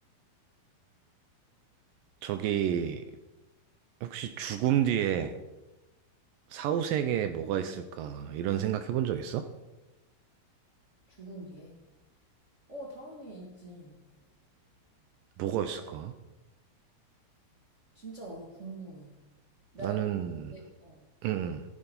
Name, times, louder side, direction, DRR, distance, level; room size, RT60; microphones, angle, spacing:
voice 1, 2.2-3.0 4.0-5.4 6.5-9.5 15.4-16.1 19.8-20.5 21.2-21.6, right 10 dB, 80° right, 9 dB, 2.1 m, -30 dB
voice 2, 11.1-11.8 12.7-14.0 17.9-19.2 19.7-20.1 20.5-21.0, right 2 dB, 45° right, -2 dB, 0.9 m, -44 dB
14.0 x 8.0 x 5.3 m, 1.0 s
omnidirectional pair, 4.4 m